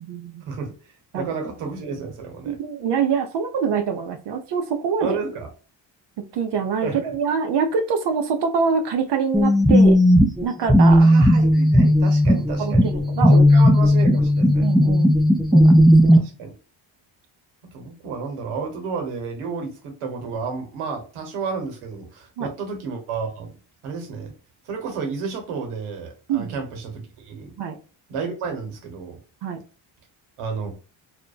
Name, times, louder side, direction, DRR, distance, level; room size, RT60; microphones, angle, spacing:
voice 1, 0.0-0.4 1.1-1.3 2.5-5.2 6.3-10.0 10.4-11.0 12.6-13.5 14.6-15.1 15.5-16.2 22.4-22.5 26.3-26.6 27.6-27.8 29.4-29.6, right 6 dB, 55° right, 6 dB, 0.6 m, -25 dB
voice 2, 1.1-2.5 5.0-5.5 6.8-7.0 10.9-12.9 13.5-14.7 16.1-16.5 17.7-23.5 23.8-24.3 24.6-27.6 28.1-29.2 30.4-30.8, right 5 dB, 85° right, 4 dB, 0.9 m, -31 dB
sound 1, 9.3-16.2, equal, ahead, 0.3 m, -15 dB
2.6 x 2.1 x 2.3 m, 0.37 s
supercardioid pair, 60°, 49 cm